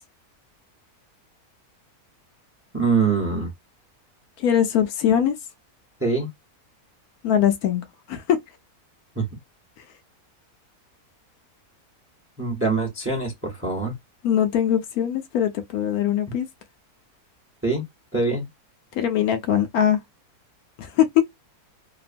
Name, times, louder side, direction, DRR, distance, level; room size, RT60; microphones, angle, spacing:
voice 1, 2.7-3.5 6.0-6.3 9.2-9.3 12.4-13.9 17.6-17.8 18.1-18.5, right 4 dB, 15° right, 0.5 m, -23 dB
voice 2, 4.4-5.3 7.2-8.4 14.2-16.5 18.9-20.0 20.8-21.2, left 10 dB, 75° left, 1.0 m, -21 dB
2.9 x 2.0 x 2.4 m
omnidirectional pair, 1.6 m